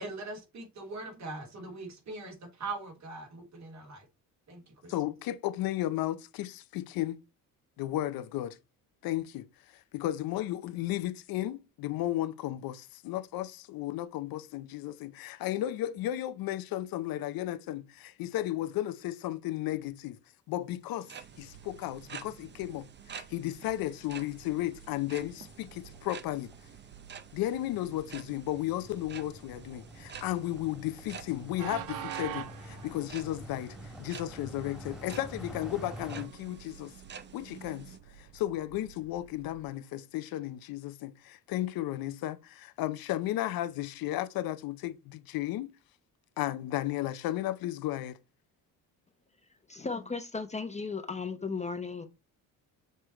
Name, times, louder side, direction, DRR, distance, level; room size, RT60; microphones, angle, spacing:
voice 1, 0.0-4.0 4.5-4.9, right 3 dB, 50° right, 3.2 m, -41 dB
voice 2, 4.9-7.2 7.8-8.6 9.0-9.5 9.7-20.2 20.5-26.5 27.3-36.9 37.3-45.7 46.4-48.2, left 14 dB, 80° left, 0.7 m, -34 dB
sound 1, 20.9-38.0, right 7 dB, 30° right, 0.7 m, -50 dB
Train, 21.2-39.7, right 11 dB, 80° right, 0.8 m, -49 dB
sound 2, 25.2-36.3, equal, ahead, 1.9 m, -48 dB
voice 3, 49.7-52.1, left 4 dB, 20° left, 0.8 m, -35 dB
6.5 x 3.4 x 4.3 m
cardioid pair, 100°, 35 cm